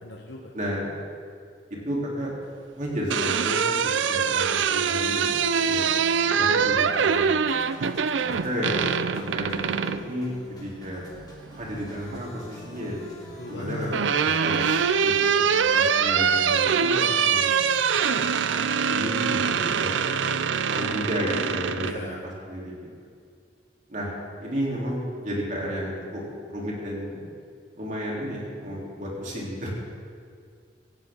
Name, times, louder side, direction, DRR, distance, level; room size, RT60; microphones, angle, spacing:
voice 1, 0.0-0.5 13.4-14.1 21.8-22.2, left 2 dB, 65° left, 0 dB, 1.2 m, -37 dB
voice 2, 0.5-0.9 1.7-2.3 2.7-5.9 6.3-7.4 8.2-8.8 9.1-11.0 11.6-13.0 13.5-15.4 15.7-17.5 18.9-20.0 20.6-22.2 22.5-22.7 23.9-27.2 27.8-29.7, equal, 45° right, -4 dB, 3.7 m, -32 dB
sound 1, 2.8-10.0 11.5-12.2 13.4-22.0, right 6 dB, 80° right, 0.5 m, -24 dB
sound 2, 5.5-20.5, left 1 dB, 20° left, 2.9 m, -47 dB
17.0 x 15.5 x 3.9 m, 2.2 s
head